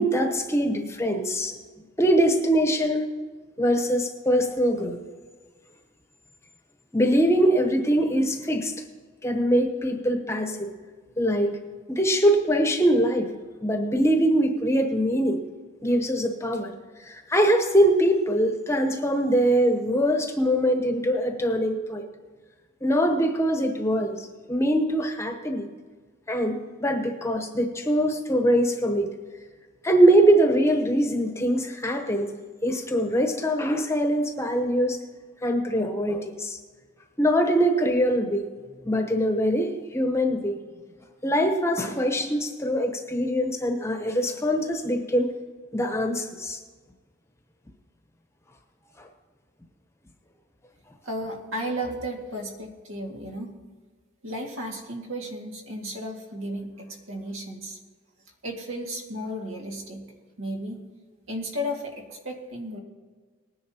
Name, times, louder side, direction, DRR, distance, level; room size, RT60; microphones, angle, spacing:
voice 1, 0.0-1.6 2.0-3.1 3.6-5.0 6.9-8.8 9.2-10.7 11.2-11.6 11.9-13.3 13.6-15.4 15.8-16.7 17.0-22.1 22.8-25.7 26.3-29.1 29.8-32.4 32.6-35.0 35.4-36.6 37.2-38.5 38.8-40.6 41.2-45.3 45.7-46.6 49.0-49.1, equal, 15° left, 5 dB, 0.9 m, -23 dB
voice 2, 51.0-53.5 54.2-57.8 58.4-60.1 60.4-60.8 61.3-62.8, equal, 80° right, 1 dB, 2.1 m, -34 dB
19.5 x 10.5 x 2.9 m, 1.4 s
head